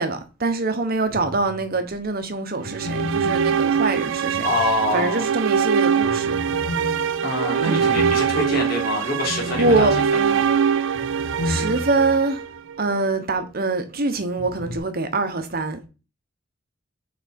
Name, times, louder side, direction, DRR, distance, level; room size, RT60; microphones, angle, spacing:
voice 1, 0.0-4.5 4.9-6.3 7.7-7.8 9.5-9.9 11.2-12.4 12.8-15.9, right 3 dB, 50° right, 1.0 m, -24 dB
sound 1, 1.1-1.8 2.6-5.4 6.0-12.2 12.5-12.6 14.4-14.8, left 2 dB, 85° left, 1.1 m, -33 dB
sound 2, 2.6-12.8, right 7 dB, 65° right, 0.3 m, -23 dB
voice 2, 4.4-5.2 7.2-9.9 10.3-10.4, left 2 dB, 50° left, 2.6 m, -25 dB
6.0 x 4.2 x 4.3 m
head